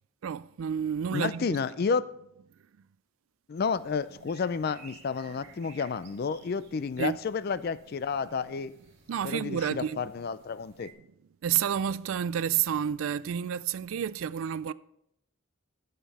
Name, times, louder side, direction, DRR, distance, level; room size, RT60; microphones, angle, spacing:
voice 1, 0.2-1.6 7.0-7.2 9.1-10.0 11.4-14.7, right 8 dB, 70° right, 0.3 m, -30 dB
voice 2, 1.1-2.1 3.5-8.7 9.2-10.9, left 5 dB, 45° left, 0.3 m, -31 dB
sound 1, 3.6-10.9, right 4 dB, 55° right, 2.2 m, -57 dB
12.5 x 6.7 x 4.1 m
head